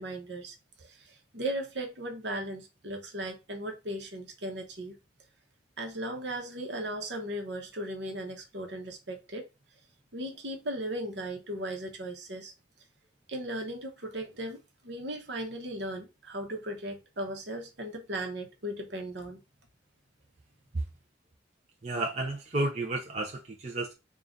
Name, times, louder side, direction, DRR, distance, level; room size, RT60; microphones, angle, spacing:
voice 1, 0.0-5.0 5.8-9.4 10.1-12.5 13.3-19.4, right 1 dB, 70° right, 1.1 m, -37 dB
voice 2, 21.8-23.9, right 2 dB, 35° right, 0.6 m, -32 dB
3.7 x 2.4 x 3.8 m
head